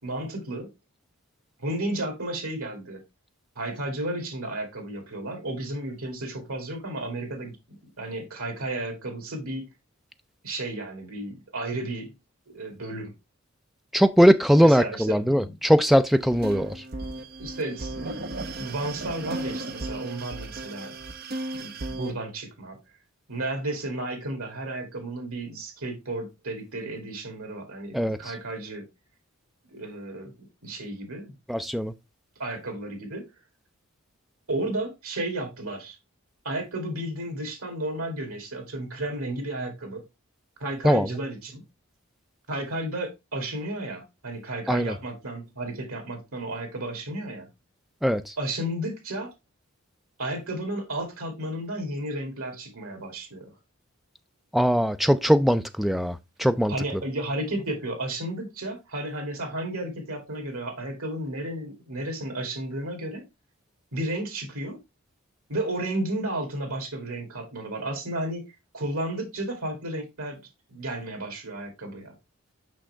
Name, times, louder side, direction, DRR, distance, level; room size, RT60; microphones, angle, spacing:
voice 1, 0.0-0.7 1.6-3.0 3.6-7.6 8.0-9.7 10.4-12.1 12.5-13.1 14.6-15.7 17.4-21.0 21.6-22.8 23.3-28.8 29.7-30.3 30.6-31.3 32.4-33.3 34.5-36.0 36.4-40.0 40.6-41.6 42.5-47.5 48.4-49.3 50.2-53.5 56.7-63.2 63.9-64.8 65.5-68.4 68.7-70.4 70.7-72.1, right 1 dB, 85° right, 2.6 m, -33 dB
voice 2, 13.9-16.7 27.9-28.2 31.5-31.9 40.8-41.1 44.7-44.9 48.0-48.3 54.5-56.7, equal, ahead, 0.3 m, -20 dB
sound 1, 16.1-22.1, right 2 dB, 45° right, 0.7 m, -35 dB
6.2 x 5.5 x 3.3 m
head